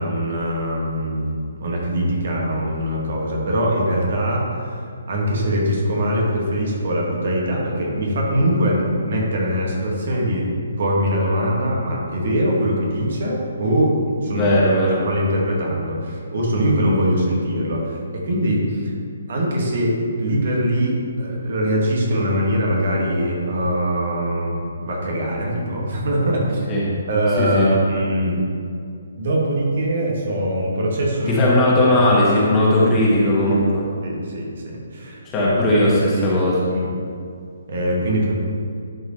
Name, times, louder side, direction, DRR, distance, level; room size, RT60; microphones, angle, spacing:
voice 1, 0.0-10.5 10.8-14.0 14.2-14.6 15.0-18.9 19.3-26.6 27.1-28.4 29.2-31.4 32.9-33.6 34.0-35.8 36.1-36.4 36.7-36.9 37.7-38.3, equal, 55° right, -3 dB, 1.9 m, -22 dB
voice 2, 14.2-15.1 26.7-26.8 27.4-27.7 31.3-33.8 35.3-36.6, left 1 dB, 20° left, -6 dB, 2.0 m, -18 dB
11.0 x 5.5 x 3.3 m, 2.3 s
figure-of-eight pair, 135°, 0 cm